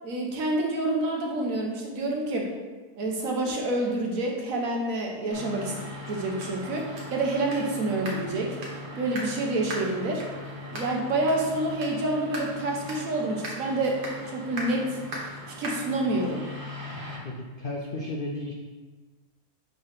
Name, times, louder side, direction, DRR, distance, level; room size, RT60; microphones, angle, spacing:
voice 1, 0.0-2.5 3.0-5.7 6.1-8.6 9.0-10.2 10.7-14.0 14.2-15.0 15.6-16.4, right 2 dB, 60° right, 0 dB, 1.4 m, -28 dB
sound 1, 5.3-17.2, equal, 80° right, 1.8 m, -38 dB
voice 2, 17.2-18.5, left 2 dB, 75° left, 0 dB, 0.4 m, -33 dB
5.4 x 3.9 x 5.6 m, 1.3 s
omnidirectional pair, 1.7 m